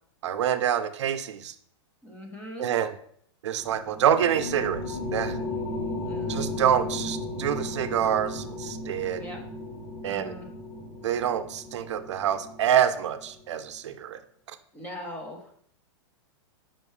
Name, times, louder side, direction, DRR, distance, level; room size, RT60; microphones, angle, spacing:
voice 1, 0.2-1.5 2.6-2.9 3.4-5.4 6.3-9.2 10.0-10.4 11.0-14.2 14.5-14.6, right 9 dB, 80° right, 10 dB, 0.6 m, -26 dB
voice 2, 2.0-2.7 6.0-6.4 9.2-9.4 10.0-10.5 14.7-15.6, left 1 dB, 10° left, 2 dB, 1.1 m, -40 dB
sound 1, 3.6-13.3, left 2 dB, 60° left, 1.6 m, -35 dB
7.0 x 5.7 x 3.3 m, 0.63 s
supercardioid pair, 160°, 15 cm